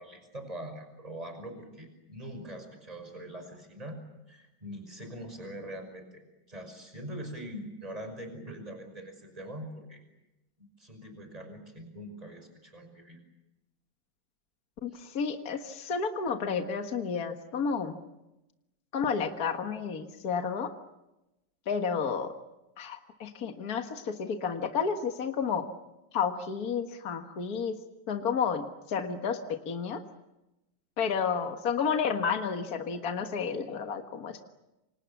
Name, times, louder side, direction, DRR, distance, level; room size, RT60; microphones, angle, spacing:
voice 1, 0.0-4.0 4.3-6.2 6.5-10.0 10.8-13.2 14.9-15.0, right 1 dB, 20° right, 6 dB, 5.8 m, -43 dB
voice 2, 14.8-17.9 18.9-20.7 21.7-22.3 22.8-25.6 26.1-27.8 28.1-30.0 31.0-34.4, left 6 dB, 55° left, 5 dB, 2.0 m, -31 dB
29.0 x 27.0 x 7.2 m, 0.96 s
omnidirectional pair, 2.0 m